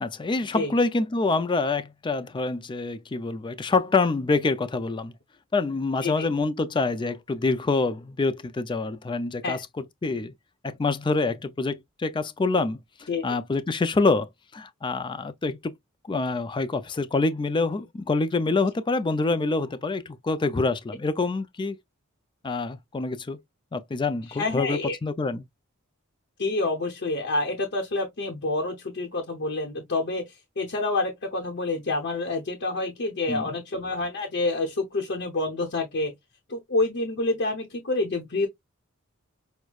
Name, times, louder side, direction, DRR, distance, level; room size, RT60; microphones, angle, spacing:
voice 1, 0.0-5.1 5.5-10.3 10.6-15.7 16.1-21.8 22.4-23.4 23.7-25.4 33.3-33.5, left 3 dB, 20° left, 0.4 m, -26 dB
voice 2, 24.3-25.0 26.4-36.1 36.5-38.5, left 2 dB, 55° left, 0.8 m, -28 dB
6.1 x 2.1 x 2.3 m
head